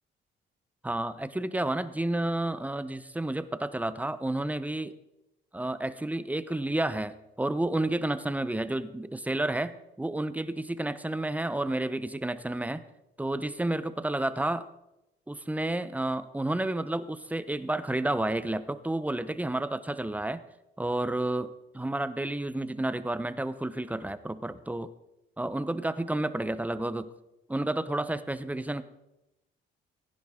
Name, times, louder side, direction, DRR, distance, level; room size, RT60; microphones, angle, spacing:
voice 1, 0.8-4.9 5.5-12.8 13.2-14.7 15.3-20.4 20.8-24.9 25.4-27.1 27.5-28.8, right 1 dB, 5° right, 14 dB, 0.8 m, -31 dB
16.0 x 10.5 x 3.7 m, 0.90 s
cardioid pair, 80°, 20 cm